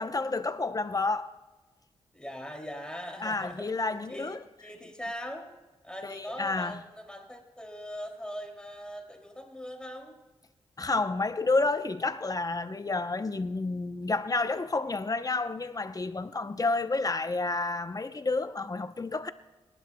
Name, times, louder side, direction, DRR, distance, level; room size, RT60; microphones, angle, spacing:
voice 1, 0.0-1.3 3.2-4.4 6.0-6.8 10.8-19.3, left 3 dB, 35° left, 0.8 m, -30 dB
voice 2, 2.1-3.7 4.1-5.5 5.8-10.2, equal, 10° left, 2.7 m, -41 dB
27.5 x 11.0 x 2.3 m
cardioid pair, 55°, 11 cm